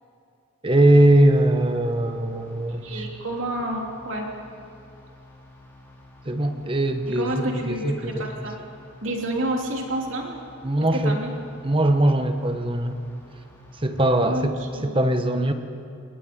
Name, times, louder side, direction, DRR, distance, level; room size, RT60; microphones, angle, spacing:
voice 1, 0.6-3.0 6.2-8.2 10.6-11.2 11.6-13.0 13.8-15.5, right 1 dB, 25° right, 7 dB, 1.2 m, -21 dB
sound 1, 1.1-14.4, left 1 dB, 10° left, 3.0 m, -49 dB
voice 2, 2.8-4.3 7.1-8.6 9.0-10.4 10.9-11.3 14.2-14.4 14.7-15.0, right 1 dB, 65° right, 0 dB, 3.1 m, -29 dB
28.0 x 20.0 x 5.3 m, 2.6 s
head